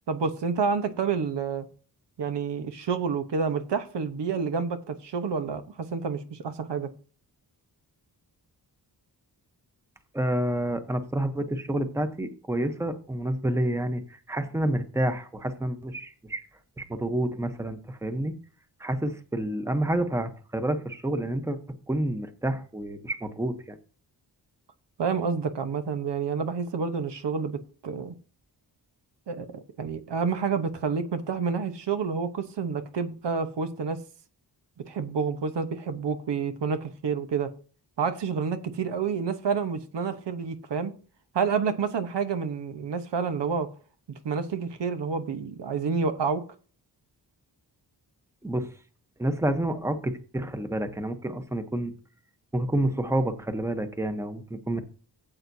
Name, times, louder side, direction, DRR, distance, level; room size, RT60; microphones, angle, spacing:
voice 1, 0.1-1.7 2.2-6.9 25.0-28.1 29.3-34.0 34.9-37.5 38.0-40.9 41.3-43.7 44.2-46.4, right 5 dB, 85° right, 1.1 m, -29 dB
voice 2, 10.1-16.4 16.8-18.3 18.8-21.6 21.9-23.8 48.4-48.7 49.2-51.9 52.5-54.8, right 1 dB, 5° right, 0.9 m, -29 dB
14.0 x 7.9 x 2.7 m
wide cardioid pair, 145°, 41 cm